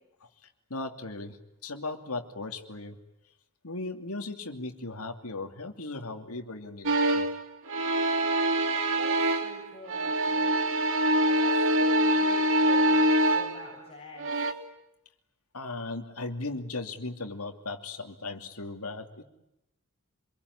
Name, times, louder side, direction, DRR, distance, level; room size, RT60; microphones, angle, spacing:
voice 1, 0.7-1.4 1.6-3.0 3.6-7.3 15.5-19.2, left 2 dB, 70° left, 4 dB, 2.8 m, -37 dB
sound 1, 6.9-7.4 7.7-9.6 9.9-13.7 14.2-14.5, right 1 dB, 60° right, 2.8 m, -24 dB
voice 2, 9.0-10.6 11.2-14.3, left 1 dB, 25° left, -3 dB, 7.6 m, -45 dB
27.0 x 22.5 x 9.7 m, 0.85 s
head